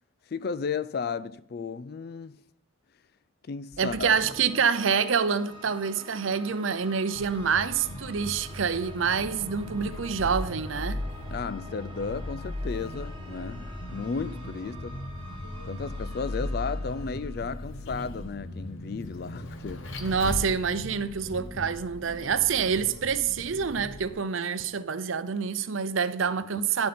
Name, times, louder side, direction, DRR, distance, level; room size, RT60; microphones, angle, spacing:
voice 1, 0.3-2.4 3.5-4.1 11.3-15.0 15.6-19.9 26.5-26.7, left 5 dB, 50° left, 0.4 m, -34 dB
sound 1, 3.7-18.1, equal, 25° right, 1.3 m, -48 dB
voice 2, 3.8-11.0 20.0-26.9, right 6 dB, 75° right, 0.6 m, -27 dB
Vehicle, 7.2-24.1, left 1 dB, 75° left, 1.1 m, -37 dB
10.5 x 7.7 x 4.2 m
head